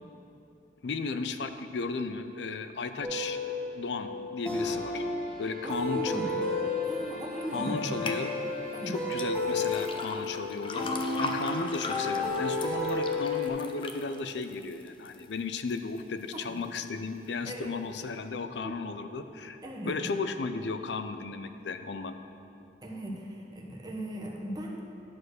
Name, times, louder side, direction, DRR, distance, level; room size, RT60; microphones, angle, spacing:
voice 1, 0.8-3.4 3.7-5.0 5.4-6.4 7.5-8.3 8.9-10.9 11.2-19.6 19.9-22.2, left 4 dB, 80° left, 9 dB, 0.5 m, -35 dB
sound 1, 3.0-13.5, left 2 dB, 10° left, 2.0 m, -32 dB
voice 2, 5.6-6.4 6.8-7.9 8.7-8.9 16.3-16.5 17.4-17.7 18.6-18.9 19.6-20.0 22.8-24.8, right 1 dB, 25° right, -1 dB, 1.1 m, -38 dB
sound 2, 8.1-8.2 9.1-15.2 15.7-16.2 16.7-16.8, left 3 dB, 30° left, 0.5 m, -38 dB
11.0 x 4.6 x 6.4 m, 2.7 s
head